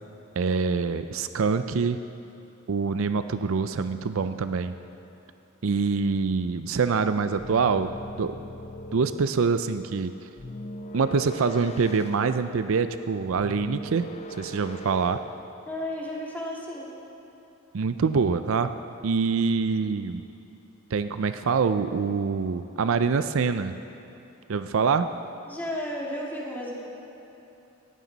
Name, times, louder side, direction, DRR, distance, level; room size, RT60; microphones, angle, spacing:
voice 1, 0.4-2.0 2.7-4.7 5.6-8.4 8.9-10.1 10.9-15.2 17.7-18.7 19.0-20.2 20.9-23.8 24.5-25.1, right 5 dB, 65° right, 10 dB, 0.5 m, -25 dB
sound 1, 7.4-9.4 10.4-12.8 13.4-15.4, right 1 dB, 30° left, 0.6 m, -40 dB
voice 2, 15.7-16.9 25.5-26.7, left 1 dB, 10° left, -4 dB, 2.5 m, -33 dB
18.5 x 14.5 x 4.1 m, 2.9 s
head